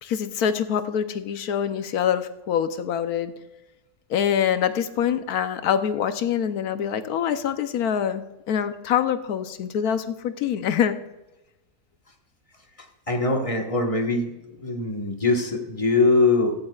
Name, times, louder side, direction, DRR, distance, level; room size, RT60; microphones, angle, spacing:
voice 1, 0.0-3.3 4.1-11.0, left 8 dB, 70° left, 10 dB, 1.2 m, -25 dB
voice 2, 13.1-16.5, left 3 dB, 20° left, 3 dB, 1.3 m, -22 dB
15.5 x 13.0 x 2.4 m, 1.0 s
omnidirectional pair, 1.7 m